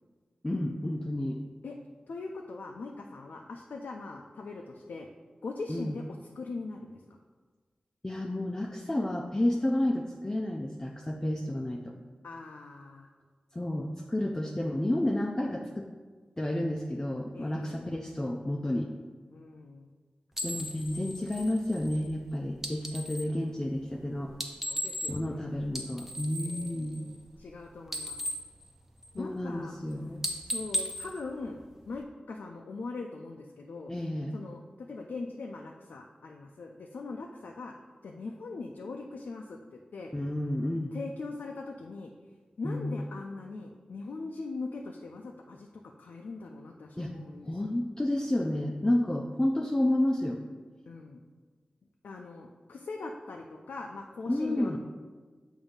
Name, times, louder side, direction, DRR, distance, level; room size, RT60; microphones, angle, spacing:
voice 1, 0.4-1.4 5.7-6.0 8.0-11.9 13.5-15.9 16.4-18.9 20.4-24.3 25.1-27.0 29.2-30.2 33.9-34.4 40.1-40.9 42.6-42.9 47.0-47.1 47.5-50.4 54.3-54.8, left 1 dB, 20° left, 1 dB, 0.4 m, -30 dB
voice 2, 2.1-5.1 5.4-6.0 6.4-7.0 12.2-13.1 17.3-17.9 19.3-19.9 23.4-23.7 24.7-25.5 26.4-28.2 29.1-29.7 30.4-33.9 34.3-37.7 38.0-40.1 40.9-42.1 42.6-47.7 50.9-51.2 52.0-54.8, left 3 dB, 90° left, 1 dB, 0.4 m, -41 dB
sound 1, 20.3-23.4 24.3-25.4 25.6-27.5 27.8-29.4 29.7-29.9 30.2-32.0, equal, 10° right, 0.7 m, -37 dB
7.1 x 2.6 x 5.1 m, 1.4 s
cardioid pair, 55°, 3 cm